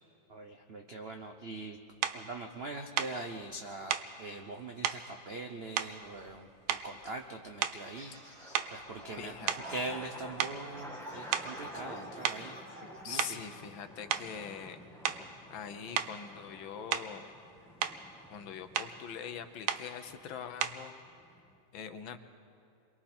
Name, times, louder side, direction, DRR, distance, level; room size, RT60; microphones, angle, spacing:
voice 1, 0.3-1.8 2.1-9.3 9.7-12.6 13.0-13.4, right 2 dB, 65° right, 4 dB, 0.6 m, -42 dB
sound 1, 2.0-2.2 3.0-3.2 3.9-4.1 4.8-5.1 5.8-6.4 6.7-7.1 7.6-7.9 8.5-10.1 10.4-10.6 11.3-11.6 12.2-12.5 13.0-13.5 14.1-14.3 15.0-15.3 15.9-16.2 16.9-17.2 17.6-18.0 18.7-19.0 19.7-19.9 20.6-20.9, right 10 dB, 80° right, 1.6 m, -34 dB
sound 2, 7.0-21.6, left 1 dB, ahead, 1.1 m, -51 dB
sound 3, 7.9-13.3, right 1 dB, 40° right, 4.9 m, -50 dB
voice 2, 9.2-9.5 12.8-14.8 15.5-17.3 18.3-20.9 21.7-22.2, left 7 dB, 70° left, 8 dB, 1.7 m, -43 dB
29.0 x 23.0 x 4.4 m, 2.6 s
omnidirectional pair, 2.3 m